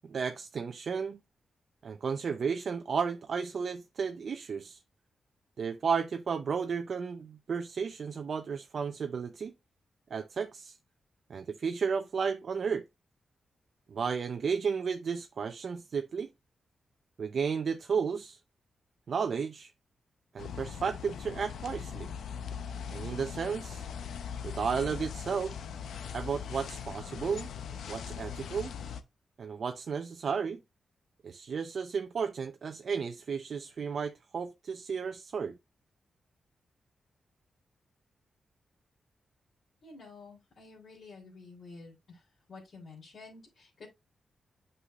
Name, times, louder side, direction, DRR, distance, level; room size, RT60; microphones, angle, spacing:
voice 1, 0.0-1.2 1.8-4.8 5.6-9.5 10.1-10.8 11.3-12.9 13.9-16.3 17.2-18.4 19.1-19.7 20.3-22.1 22.9-23.9 24.4-25.5 26.1-27.5 27.9-28.7 29.4-30.6 31.2-35.6, right 6 dB, 65° right, 0.5 m, -33 dB
sound 1, 20.4-29.0, left 7 dB, 90° left, 0.7 m, -40 dB
voice 2, 39.8-43.9, left 3 dB, 65° left, 3.1 m, -50 dB
8.4 x 5.5 x 2.4 m
cardioid pair, 75°, 0 cm